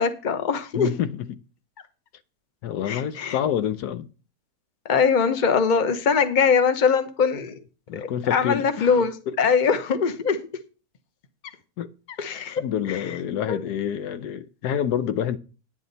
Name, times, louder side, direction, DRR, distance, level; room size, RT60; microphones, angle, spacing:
voice 1, 0.0-0.9 2.9-3.3 4.8-7.6 7.9-9.1 9.4-10.4 12.2-12.6 12.9-13.0 13.5-13.6, left 6 dB, 35° left, 0.9 m, -22 dB
voice 2, 0.7-1.4 2.6-4.1 7.9-9.4 11.8-11.9 12.6-15.4, left 9 dB, 80° left, 1.3 m, -28 dB
9.9 x 9.4 x 4.0 m
omnidirectional pair, 1.7 m